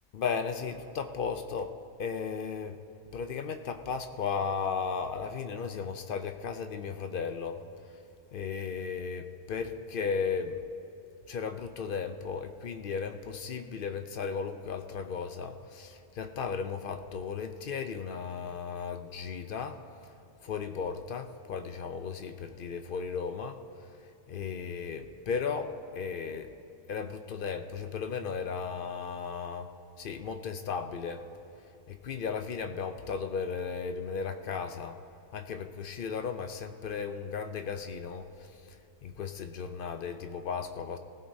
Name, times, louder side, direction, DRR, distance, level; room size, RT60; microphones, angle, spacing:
voice 1, 0.1-1.7 2.0-2.8 3.1-7.6 8.3-10.6 11.3-19.8 20.4-23.6 24.3-26.5 26.9-29.7 30.0-31.2 31.9-35.0 35.3-38.3 39.0-41.0, left 6 dB, 60° left, 7 dB, 0.6 m, -35 dB
21.0 x 15.5 x 2.7 m, 2.7 s
omnidirectional pair, 1.4 m